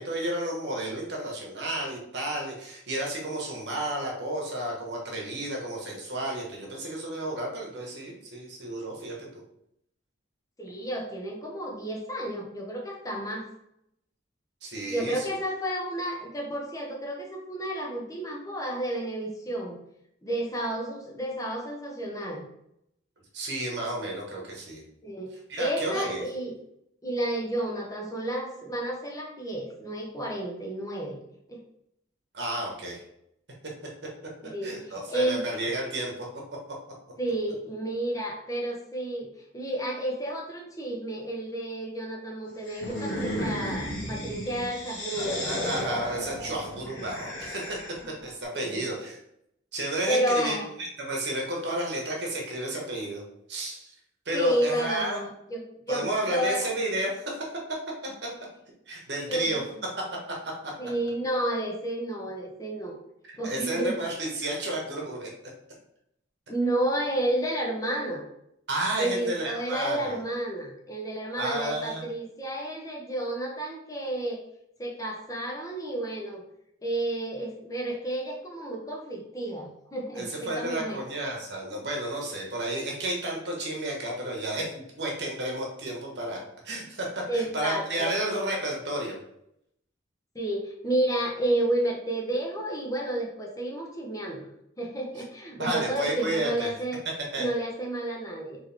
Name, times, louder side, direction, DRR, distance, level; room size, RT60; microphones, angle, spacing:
voice 1, 0.0-9.4 14.6-15.3 23.3-24.8 25.5-26.2 32.3-33.0 34.6-36.3 45.5-47.8 48.2-49.2 49.7-53.2 53.5-53.9 54.2-55.2 55.9-57.5 58.9-59.9 60.6-60.7 63.4-65.3 68.7-70.2 71.4-72.0 80.2-86.4 86.6-89.2 95.6-96.7 97.0-97.5, right 1 dB, 60° right, -1 dB, 1.1 m, -32 dB
voice 2, 10.6-13.5 14.9-19.8 20.2-22.4 25.0-25.3 25.6-26.6 27.0-31.2 31.5-31.6 34.4-35.7 37.2-45.6 45.9-46.0 48.5-48.8 50.1-50.7 54.3-56.7 59.3-59.6 60.8-63.0 63.4-64.0 66.5-68.2 69.0-74.4 74.8-76.4 76.8-81.0 87.3-88.1 90.3-94.5 94.8-97.0 97.4-98.6, right 1 dB, 20° left, -1 dB, 0.9 m, -31 dB
sound 1, 42.7-48.1, equal, 60° left, 1.4 m, -34 dB
4.3 x 3.3 x 3.4 m, 0.77 s
head